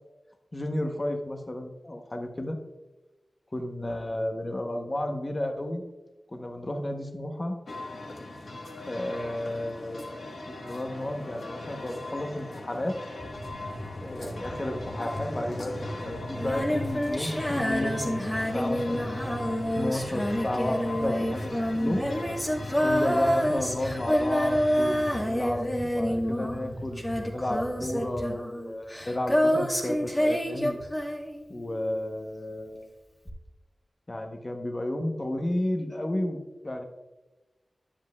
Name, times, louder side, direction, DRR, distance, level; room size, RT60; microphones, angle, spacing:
voice 1, 0.5-2.6 3.5-5.8 6.3-7.6 8.9-10.0 10.6-13.0 14.0-18.2 18.5-19.1 19.8-22.0 22.8-30.8 31.5-32.9 34.1-36.8, left 1 dB, 35° left, 4 dB, 0.9 m, -32 dB
sound 1, 7.7-25.2, left 2 dB, 80° left, 1.4 m, -40 dB
sound 2, 13.2-28.3, equal, ahead, 2.5 m, -40 dB
Female singing, 16.4-31.7 33.3-33.4, equal, 15° left, 1.3 m, -28 dB
10.0 x 7.5 x 2.3 m, 1.1 s
wide cardioid pair, 65°, 0 cm